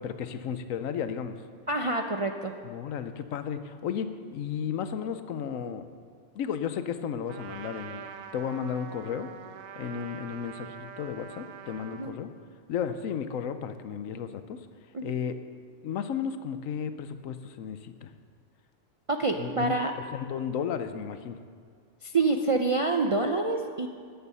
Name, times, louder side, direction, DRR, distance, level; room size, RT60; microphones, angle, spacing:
voice 1, 0.0-1.4 2.6-5.9 6.3-8.0 8.3-9.3 9.8-12.3 12.7-14.6 15.0-15.4 15.8-18.1 19.4-19.8 20.1-21.4, left 7 dB, 85° left, 10 dB, 1.1 m, -33 dB
voice 2, 1.7-2.5 11.9-12.1 14.9-15.1 19.1-19.9 22.0-23.9, right 3 dB, 45° right, 4 dB, 0.4 m, -27 dB
Trumpet, 7.3-12.2, right 8 dB, 85° right, 1.1 m, -44 dB
13.5 x 9.4 x 5.5 m, 2.1 s
omnidirectional pair, 1.4 m